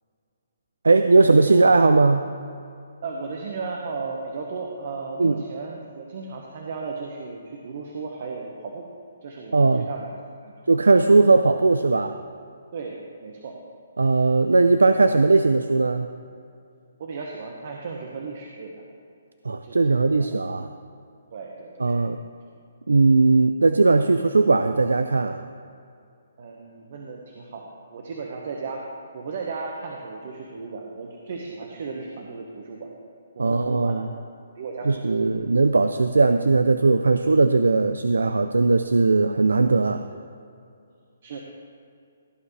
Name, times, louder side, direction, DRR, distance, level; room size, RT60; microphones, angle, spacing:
voice 1, 0.8-2.3 5.2-5.4 9.5-9.9 10.7-12.2 14.0-16.1 19.4-20.7 21.8-22.2 22.9-25.4 33.4-34.1 34.9-40.0, right 3 dB, 85° right, 9 dB, 0.4 m, -18 dB
voice 2, 3.0-8.9 9.2-10.1 10.4-10.7 12.7-13.6 17.0-18.8 19.6-20.3 21.3-22.0 26.4-28.9 29.1-32.9 33.3-34.0 34.6-35.5 41.2-41.4, right 4 dB, 55° right, 0 dB, 1.3 m, -35 dB
16.5 x 8.8 x 3.3 m, 2.5 s
hypercardioid pair, 145°, 0 cm